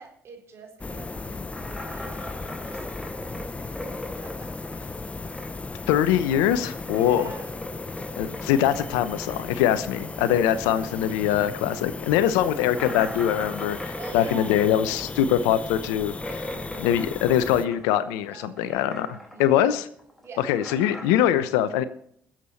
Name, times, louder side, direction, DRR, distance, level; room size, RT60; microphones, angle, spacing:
voice 1, 0.0-3.9 4.2-5.0 6.8-7.6 9.9-10.4 14.0-14.6 16.4-17.1 18.2-18.8 19.1-19.6 20.2-20.5, right 4 dB, 55° right, 2 dB, 3.8 m, -46 dB
sound 1, 0.8-17.7, left 3 dB, 25° left, 0.7 m, -36 dB
sound 2, 1.5-5.8 6.0-11.1 11.4-11.5 11.9-12.0 12.7-18.3 18.6-19.5 19.8-21.3, equal, 5° left, 3.3 m, -40 dB
voice 2, 5.9-7.3 8.2-16.5 16.8-19.9 20.4-21.8, left 10 dB, 80° left, 14 dB, 0.8 m, -23 dB
22.0 x 7.5 x 4.2 m, 0.66 s
hypercardioid pair, 55°, 5 cm